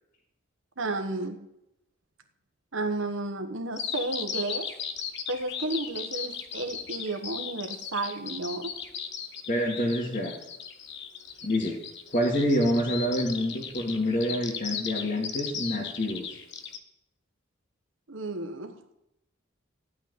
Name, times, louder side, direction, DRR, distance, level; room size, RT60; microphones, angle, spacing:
voice 1, 0.8-1.4 2.7-4.7 5.3-8.7 18.1-18.8, right 2 dB, 75° right, 6 dB, 1.4 m, -32 dB
Bird vocalization bird call bird song, 3.8-16.8, left 8 dB, 60° left, 1.2 m, -36 dB
voice 2, 9.5-10.3 11.4-11.8 12.1-16.3, equal, 45° left, -4 dB, 2.2 m, -27 dB
15.0 x 6.1 x 9.7 m, 0.87 s
head